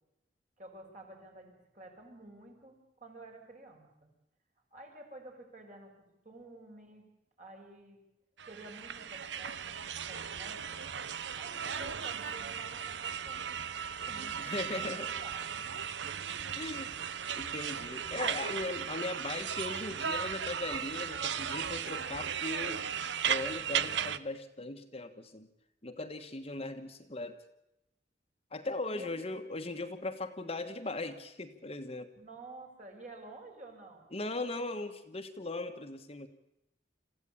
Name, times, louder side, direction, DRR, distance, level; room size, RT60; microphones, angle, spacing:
voice 1, 0.6-4.1 4.7-7.1 7.4-8.0 8.4-10.8 11.3-15.7 16.2-16.6 28.9-29.1 32.2-34.1, right 2 dB, 45° right, 1 dB, 5.7 m, -51 dB
sound 1, 8.4-24.2, right 8 dB, 85° right, 0.8 m, -36 dB
voice 2, 14.4-15.1 16.6-16.9 17.4-22.8 23.2-25.5 25.8-27.4 28.5-32.1 34.1-36.3, left 2 dB, 35° left, 6 dB, 1.4 m, -39 dB
27.5 x 15.0 x 8.5 m, 0.88 s
head